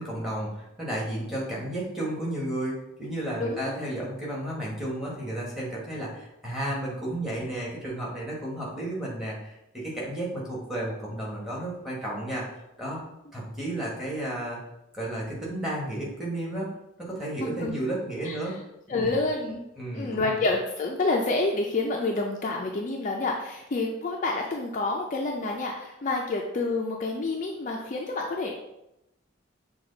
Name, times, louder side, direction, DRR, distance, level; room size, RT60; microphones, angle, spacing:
voice 1, 0.0-13.0 13.3-14.6 14.9-16.7 17.0-18.6 18.9-19.2 19.8-20.3, right 1 dB, ahead, -5 dB, 1.2 m, -33 dB
voice 2, 3.4-3.8 17.4-17.7 18.2-18.4 18.9-19.6 19.9-28.5, left 3 dB, 35° left, 0 dB, 0.4 m, -28 dB
6.0 x 2.3 x 3.8 m, 0.86 s
head